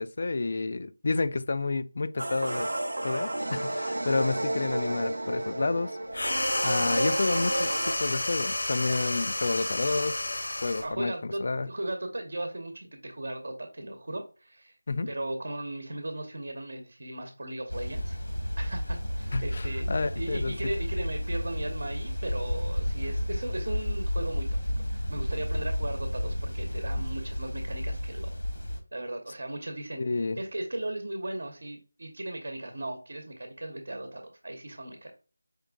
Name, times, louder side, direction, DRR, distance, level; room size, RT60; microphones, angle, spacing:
voice 1, 0.0-2.7 3.0-6.0 6.6-7.7 8.0-10.2 10.6-11.7 14.9-15.1 19.3-20.5 30.0-30.4, left 3 dB, 40° left, 0.3 m, -30 dB
sound 1, 2.2-7.9, right 1 dB, 80° right, 0.6 m, -31 dB
sound 2, 6.1-10.9, left 2 dB, 60° left, 0.8 m, -31 dB
voice 2, 10.8-14.8 15.1-18.2 18.6-24.5 24.9-28.4 28.9-35.1, right 1 dB, 60° right, 0.9 m, -37 dB
sound 3, 17.7-28.8, equal, 90° left, 1.5 m, -32 dB
5.1 x 3.5 x 2.2 m
figure-of-eight pair, 175°, 0 cm